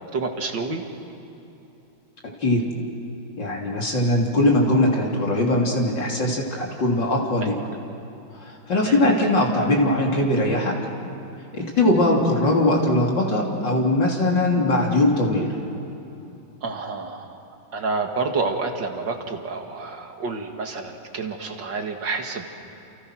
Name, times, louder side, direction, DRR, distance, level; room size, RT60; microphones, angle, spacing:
voice 1, 0.1-0.8 7.4-7.5 8.8-9.0 16.6-17.4 17.7-22.5, right 4 dB, 65° right, 3 dB, 2.6 m, -29 dB
voice 2, 3.4-7.5 8.4-10.8 11.5-15.5, left 1 dB, 65° left, -1 dB, 3.8 m, -21 dB
29.5 x 28.5 x 6.2 m, 2.9 s
omnidirectional pair, 2.1 m